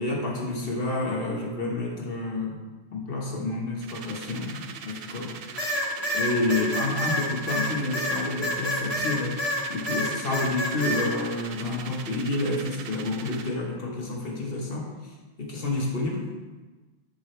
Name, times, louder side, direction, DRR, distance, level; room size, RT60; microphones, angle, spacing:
voice 1, 0.0-2.6 2.9-5.6 6.1-16.3, left 2 dB, 60° left, -1 dB, 1.4 m, -29 dB
sound 1, 3.8-13.6, right 6 dB, 65° right, 0.7 m, -41 dB
sound 2, 5.6-9.6 9.9-11.1, equal, 25° left, 0.9 m, -28 dB
7.0 x 5.9 x 3.2 m, 1.2 s
omnidirectional pair, 1.1 m